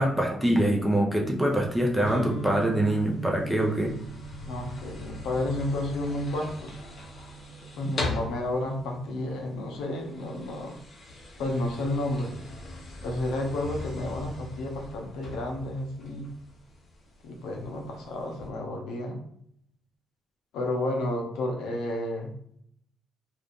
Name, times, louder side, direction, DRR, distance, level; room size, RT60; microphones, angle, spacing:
voice 1, 0.0-3.9 8.1-8.2, right 1 dB, ahead, -1 dB, 0.8 m, -24 dB
sound 1, 1.5-18.5, left 2 dB, 50° left, 1.0 m, -42 dB
sound 2, 2.0-9.8, right 5 dB, 60° right, 0.9 m, -42 dB
voice 2, 4.4-6.8 7.8-10.8 11.4-12.4 13.0-16.3 17.2-19.2 20.5-22.3, left 1 dB, 90° left, 1 dB, 0.7 m, -31 dB
2.6 x 2.4 x 3.6 m, 0.69 s
cardioid pair, 90°, 0 cm